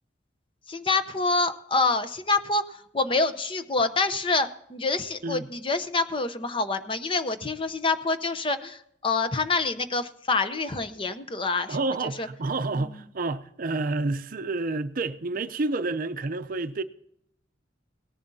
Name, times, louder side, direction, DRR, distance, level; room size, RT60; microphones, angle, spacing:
voice 1, 0.7-11.8 12.2-12.3 12.8-13.0, left 3 dB, 30° left, 0.7 m, -26 dB
voice 2, 11.7-16.8, right 3 dB, 50° right, 0.6 m, -29 dB
18.0 x 10.5 x 2.7 m
head